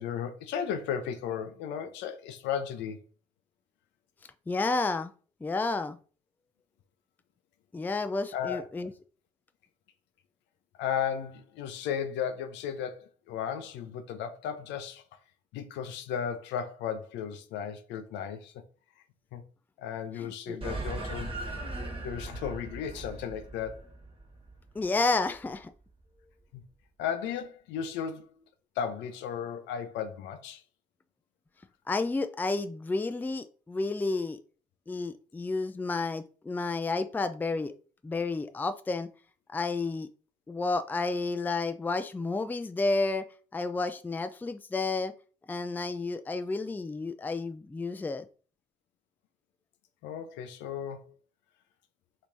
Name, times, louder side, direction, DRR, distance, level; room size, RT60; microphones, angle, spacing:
voice 1, 0.0-3.0 8.3-8.6 10.8-15.0 15.5-18.6 19.3-19.4 19.8-21.4 22.0-23.9 26.5-26.6 27.0-28.3 28.8-30.6 50.0-51.1, left 8 dB, 70° left, 0.5 m, -35 dB
voice 2, 4.5-5.1 5.4-6.0 7.7-8.9 20.2-20.6 24.7-25.7 31.9-34.4 34.9-37.7 38.0-39.1 39.5-40.1 40.5-43.2 43.5-45.1 45.5-48.3, left 3 dB, 10° left, 0.3 m, -31 dB
sound 1, 20.6-25.4, right 2 dB, 30° right, 1.4 m, -38 dB
3.2 x 3.0 x 2.6 m
hypercardioid pair, 45°, 19 cm